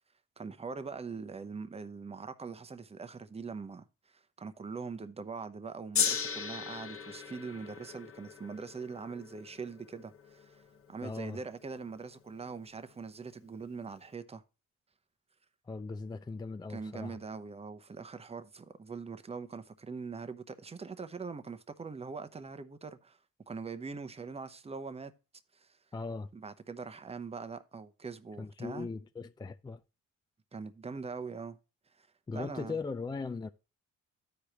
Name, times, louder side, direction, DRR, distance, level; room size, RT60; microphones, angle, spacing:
voice 1, 0.4-10.6 10.9-14.4 16.7-23.2 23.5-25.1 25.5-25.8 26.3-28.9 30.5-31.6 32.0-32.1 32.3-32.8, right 4 dB, 20° right, 0.8 m, -42 dB
Gong, 5.9-12.3 13.1-13.2, left 7 dB, 45° left, 1.0 m, -37 dB
voice 2, 11.0-11.4 15.7-17.2 25.9-26.3 28.4-29.8 32.3-33.5, left 4 dB, 15° left, 0.4 m, -39 dB
13.5 x 5.0 x 2.9 m
cardioid pair, 90°, 30 cm